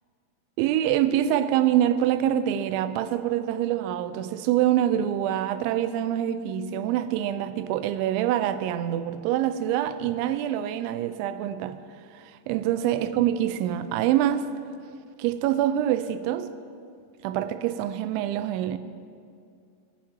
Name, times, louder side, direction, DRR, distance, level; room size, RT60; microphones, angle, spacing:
voice 1, 0.6-11.8 12.1-14.5 15.2-16.5 17.2-18.8, right 11 dB, 85° right, 2.7 m, -25 dB
16.0 x 5.8 x 9.0 m
omnidirectional pair, 5.7 m